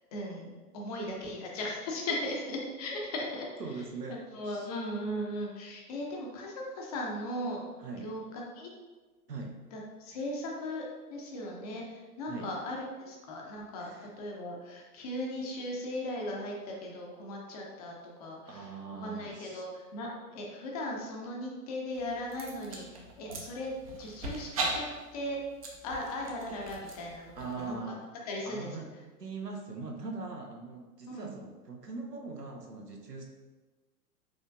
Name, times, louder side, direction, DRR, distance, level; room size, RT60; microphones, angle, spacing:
voice 1, 0.1-3.6 4.1-7.7 8.0-8.7 9.7-18.7 19.0-23.7 24.0-24.8 25.1-25.4 25.8-27.8 28.3-28.7 31.1-31.3, left 1 dB, 25° left, -1 dB, 0.6 m, -38 dB
voice 2, 3.6-4.7 7.8-8.1 9.3-9.6 12.3-12.5 13.8-14.1 18.5-19.6 27.3-28.1 28.4-28.9 29.2-33.2, right 3 dB, 85° right, 1 dB, 0.9 m, -41 dB
sound 1, 21.9-27.7, right 2 dB, 25° right, 0.4 m, -40 dB
5.0 x 3.7 x 2.5 m, 1.3 s
figure-of-eight pair, 110°, 47 cm